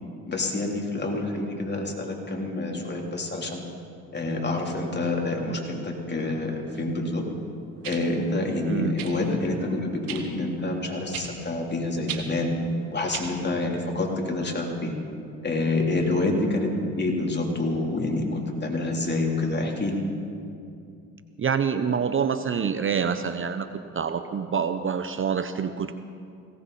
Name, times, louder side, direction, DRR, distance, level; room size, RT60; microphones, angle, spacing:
voice 1, 0.3-3.6 4.1-7.2 7.8-12.5 12.9-14.9 15.4-16.7 17.0-20.0, left 2 dB, 30° left, 0 dB, 3.4 m, -27 dB
sound 1, 6.7-6.8 7.8-8.0 9.0-9.2 10.1-10.3 11.1-11.3 12.1-12.3 13.1-13.3 14.2-14.3, right 10 dB, 75° right, 1.7 m, -35 dB
voice 2, 8.7-9.0 21.4-25.9, right 7 dB, 35° right, 10 dB, 0.8 m, -26 dB
19.0 x 17.5 x 4.2 m, 2.5 s
supercardioid pair, 70°, 35 cm